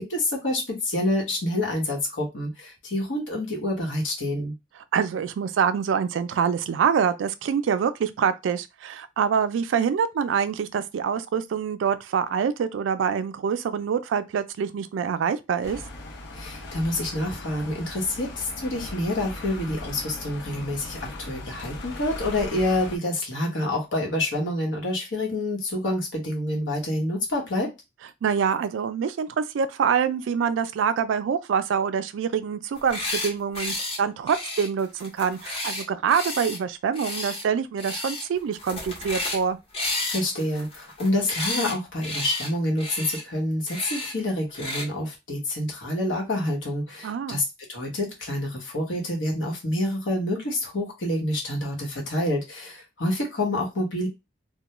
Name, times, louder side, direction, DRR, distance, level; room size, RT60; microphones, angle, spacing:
voice 1, 0.0-4.5 16.3-27.7 40.0-47.4 47.7-54.1, left 1 dB, 85° left, 1.0 m, -27 dB
voice 2, 4.9-15.8 28.2-39.6 47.0-47.4, right 7 dB, 85° right, 0.3 m, -25 dB
sound 1, 15.6-23.0, left 2 dB, 65° left, 0.6 m, -39 dB
sound 2, 32.7-33.3 33.6-34.0 34.3-36.6 36.9-37.4 37.8-38.3 38.5-39.4 39.7-41.7 42.0-42.5 42.8-43.2 43.7-44.1 44.5-44.9, left 2 dB, 30° left, 0.7 m, -32 dB
2.2 x 2.2 x 2.9 m
head